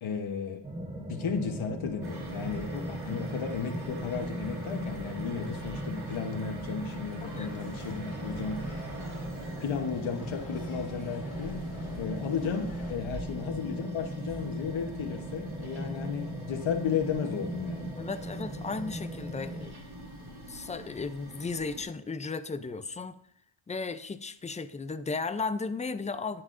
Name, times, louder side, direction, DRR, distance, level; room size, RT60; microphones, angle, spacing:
voice 1, 0.0-8.9 9.6-18.0, left 6 dB, 80° left, 3 dB, 1.0 m, -34 dB
sound 1, 0.6-19.7, right 1 dB, 15° right, 0.8 m, -39 dB
sound 2, 2.0-21.8, equal, 50° right, 2.2 m, -44 dB
sound 3, 7.2-12.9, left 1 dB, 40° left, 2.7 m, -47 dB
voice 2, 7.2-7.5 18.0-19.8 20.5-23.2 23.7-26.4, left 4 dB, 15° left, 12 dB, 0.4 m, -35 dB
9.6 x 9.5 x 2.5 m, 0.72 s
wide cardioid pair, 115°, 47 cm